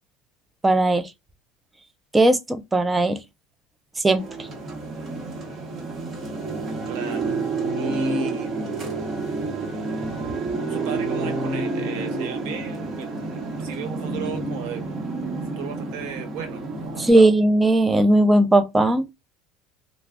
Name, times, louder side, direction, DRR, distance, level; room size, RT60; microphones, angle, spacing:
voice 1, 0.6-1.1 2.1-3.2 4.0-4.2 17.0-19.1, right 2 dB, 10° right, 0.4 m, -18 dB
sound 1, 4.2-17.1, right 3 dB, 30° right, 0.8 m, -29 dB
voice 2, 6.9-7.4 7.8-8.5 10.7-14.8 15.6-17.3, right 8 dB, 75° right, 1.0 m, -36 dB
2.3 x 2.0 x 3.4 m
cardioid pair, 140°, 0 cm